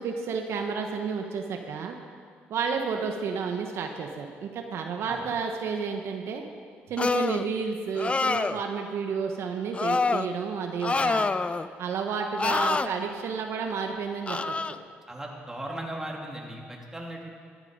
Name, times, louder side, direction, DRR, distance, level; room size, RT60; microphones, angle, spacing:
voice 1, 0.0-2.0 2.5-6.4 6.9-11.3 11.8-14.5, right 5 dB, 70° right, 4 dB, 1.2 m, -31 dB
sound 1, 7.0-7.5 8.0-8.6 9.7-10.3 10.8-11.7 12.4-12.9 14.3-14.7, left 3 dB, 25° left, 0.5 m, -26 dB
voice 2, 15.1-17.3, right 1 dB, 10° right, -1 dB, 3.0 m, -37 dB
14.0 x 11.0 x 5.4 m, 2.1 s
supercardioid pair, 70°, 5 cm